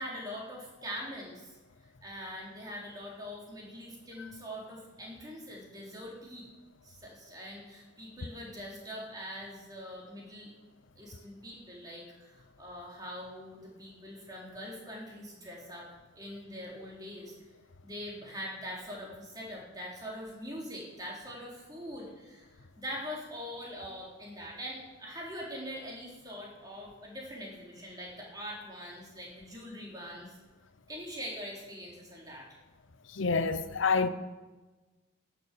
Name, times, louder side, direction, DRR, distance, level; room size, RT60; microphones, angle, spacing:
voice 1, 0.0-1.5 2.0-6.5 6.8-10.5 11.0-15.9 16.1-17.3 17.8-30.4 30.9-32.5, equal, 20° right, 3.5 m, -43 dB
voice 2, 33.2-34.1, left 4 dB, 75° left, 0.8 m, -27 dB
17.0 x 7.4 x 6.7 m
head